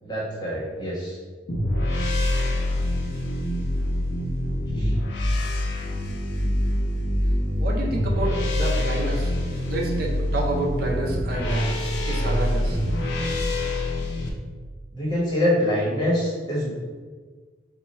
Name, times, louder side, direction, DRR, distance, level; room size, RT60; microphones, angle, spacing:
voice 1, 0.0-1.2 4.7-4.9 14.9-16.7, left 1 dB, 25° left, -6 dB, 1.1 m, -25 dB
sound 1, 1.5-14.3, left 1 dB, 70° left, 0.6 m, -25 dB
voice 2, 7.6-9.4 9.7-11.7 12.1-12.8, right 2 dB, 55° right, -1 dB, 0.6 m, -29 dB
4.2 x 2.3 x 4.2 m, 1.5 s
head